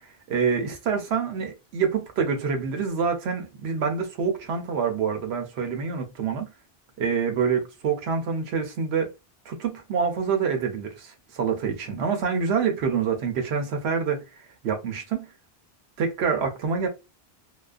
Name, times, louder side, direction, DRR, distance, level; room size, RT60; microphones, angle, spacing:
voice 1, 0.3-6.5 7.0-9.1 9.5-14.2 14.6-15.3 16.0-16.9, right 6 dB, 90° right, 0.9 m, -26 dB
2.3 x 2.3 x 2.3 m
omnidirectional pair, 1.0 m